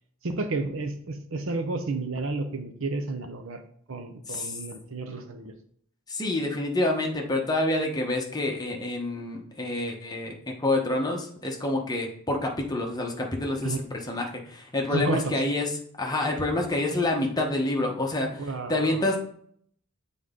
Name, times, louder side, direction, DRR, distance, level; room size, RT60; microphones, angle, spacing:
voice 1, 0.2-3.6 3.9-5.5 13.6-13.8 14.9-15.3 18.4-19.0, right 3 dB, 60° right, 7 dB, 0.7 m, -31 dB
voice 2, 4.3-4.6 6.1-15.7 16.0-19.2, left 2 dB, 15° left, 1 dB, 1.0 m, -28 dB
7.6 x 3.9 x 3.7 m, 0.63 s
head